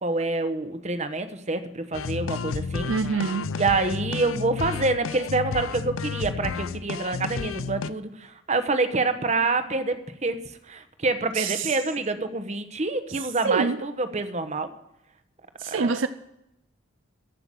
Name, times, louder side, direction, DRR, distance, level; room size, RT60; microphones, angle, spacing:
voice 1, 0.0-2.9 3.6-10.4 10.7-14.7 15.7-16.0, right 3 dB, 35° right, 1.0 m, -27 dB
sound 1, 1.9-7.9, left 5 dB, 80° left, 0.5 m, -32 dB
voice 2, 2.9-3.5 11.4-11.8 13.4-13.8 15.6-16.1, right 5 dB, 65° right, 0.5 m, -26 dB
14.5 x 5.8 x 9.8 m
head